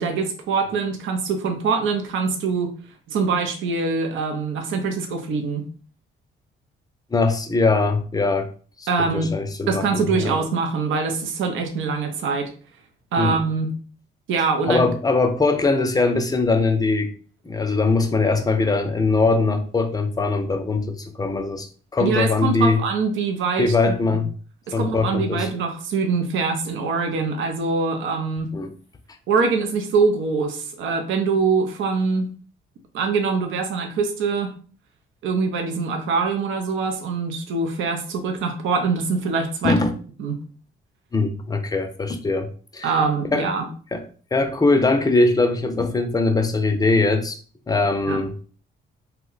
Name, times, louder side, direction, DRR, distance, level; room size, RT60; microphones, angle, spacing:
voice 1, 0.0-2.7 3.1-5.7 8.9-9.3 9.7-12.5 13.1-13.7 14.3-14.9 22.0-23.7 24.1-24.2 24.8-28.5 29.3-32.3 32.9-34.5 35.2-39.8 40.2-40.4 42.8-43.7 48.1-48.2, right 4 dB, 75° right, 0.6 m, -23 dB
voice 2, 7.1-8.5 8.8-10.3 13.2-13.4 14.7-17.1 17.4-22.8 23.6-24.3 24.7-25.5 28.5-28.7 39.6-39.9 41.1-42.5 42.7-42.9 43.3-43.5 43.9-44.0 44.3-47.4 47.7-48.4, left 3 dB, 20° left, 0.5 m, -21 dB
2.8 x 2.1 x 3.9 m
cardioid pair, 90°, 20 cm